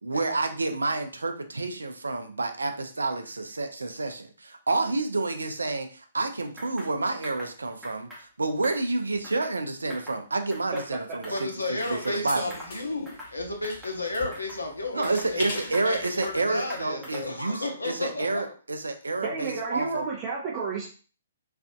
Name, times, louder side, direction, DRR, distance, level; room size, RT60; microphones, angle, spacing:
voice 1, 0.0-11.3 11.7-12.6 14.9-20.1, right 3 dB, 75° right, 6 dB, 0.5 m, -29 dB
sound 1, 6.6-6.9 7.2-7.5 7.8-8.2 8.6-9.6 9.9-10.2 10.5-11.5 11.8-12.2 12.5-12.8 13.1-13.4 13.6-14.6 15.0-16.4 16.7-17.4, equal, 5° right, 0.9 m, -43 dB
voice 2, 11.3-15.6 15.8-18.5, left 2 dB, 80° left, 3 dB, 0.8 m, -33 dB
sound 2, 11.8-16.8, left 1 dB, 50° left, 1.1 m, -41 dB
voice 3, 19.2-20.9, right 4 dB, 25° right, -5 dB, 0.7 m, -31 dB
3.3 x 2.5 x 2.2 m, 0.38 s
figure-of-eight pair, 125°, 0 cm